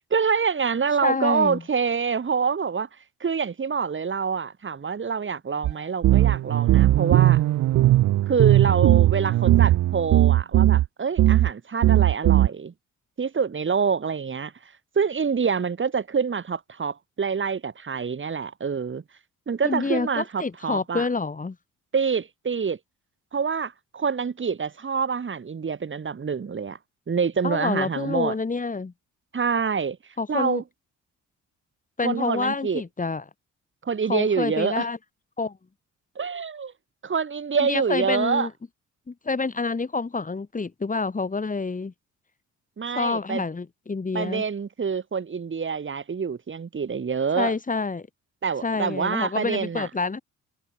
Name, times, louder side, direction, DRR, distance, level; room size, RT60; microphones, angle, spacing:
voice 1, 0.1-2.9 3.2-7.4 8.3-12.7 13.2-14.5 15.0-19.0 19.5-21.1 21.9-22.8 23.3-26.8 27.1-28.3 29.3-30.0 30.3-30.6 32.0-32.8 33.8-34.9 36.2-36.7 37.0-38.5 42.8-43.4 44.1-47.5 48.4-49.9, right 6 dB, 40° right, 7.6 m, -26 dB
voice 2, 1.0-1.6 19.6-21.6 27.4-28.9 30.2-30.6 32.0-33.2 34.1-35.0 35.4-35.6 37.6-38.5 39.1-41.9 42.9-44.4 47.4-48.1 48.6-50.2, left 4 dB, 25° left, 4.6 m, -27 dB
sound 1, 5.6-5.7 6.0-10.9 11.2-11.5 11.8-12.5, right 14 dB, 70° right, 0.7 m, -18 dB
cardioid pair, 90°, 30 cm